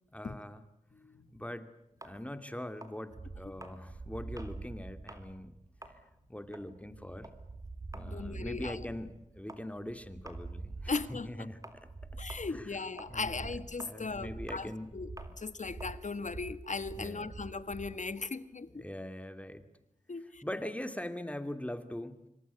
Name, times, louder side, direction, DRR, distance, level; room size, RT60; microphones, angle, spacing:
voice 1, 0.1-0.6 1.3-1.7 2.0-5.5 6.3-7.3 7.9-11.9 12.5-12.7 13.1-14.9 17.0-17.3 18.7-19.7 20.4-22.3, left 1 dB, 10° left, 2.6 m, -42 dB
sound 1, 2.0-4.6 5.0-5.3 5.6-12.0 12.3-17.1, right 1 dB, 25° right, 3.8 m, -53 dB
sound 2, 3.1-18.0, right 3 dB, 60° right, 4.3 m, -46 dB
voice 2, 8.1-8.9 10.9-11.5 12.2-15.1 15.4-18.8 20.1-20.4, left 4 dB, 70° left, 1.7 m, -38 dB
27.5 x 25.0 x 8.4 m
wide cardioid pair, 60°, 13 cm